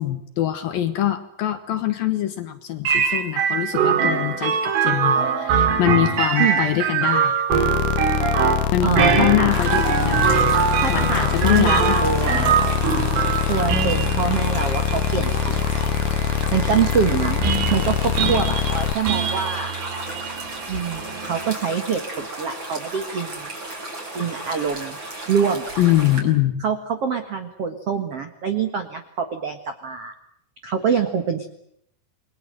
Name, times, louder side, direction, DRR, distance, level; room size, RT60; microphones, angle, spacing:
voice 1, 0.0-7.4 8.7-12.5 25.8-26.6, left 12 dB, 65° left, 9 dB, 2.5 m, -23 dB
sound 1, 2.9-21.5, right 7 dB, 90° right, 5.0 m, -23 dB
sound 2, 7.5-18.9, left 11 dB, 85° left, 1.8 m, -24 dB
voice 2, 8.8-9.6 10.8-12.5 13.5-15.9 16.5-19.7 20.7-23.5 24.1-25.0 25.3-25.7 26.6-30.1 30.6-31.5, right 7 dB, 70° right, 7 dB, 1.4 m, -25 dB
sound 3, 9.5-26.2, right 1 dB, 25° right, 5.9 m, -33 dB
28.5 x 22.0 x 7.8 m, 0.73 s
omnidirectional pair, 5.4 m